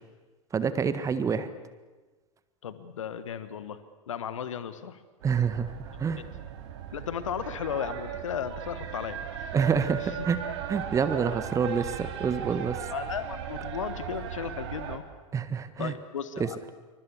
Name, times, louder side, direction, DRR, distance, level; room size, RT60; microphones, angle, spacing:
voice 1, 0.5-1.5 5.2-5.7 6.0-6.2 9.5-10.4 10.7-12.8 15.3-15.9 16.4-16.5, right 6 dB, 20° right, 13 dB, 1.6 m, -27 dB
voice 2, 2.6-3.8 4.1-5.0 6.9-9.2 10.0-10.3 12.9-15.0 15.8-16.6, left 8 dB, 65° left, 12 dB, 1.5 m, -35 dB
sound 1, 5.2-15.0, right 9 dB, 50° right, 3.0 m, -37 dB
27.5 x 25.0 x 7.2 m, 1.3 s
figure-of-eight pair, 90°, 18 cm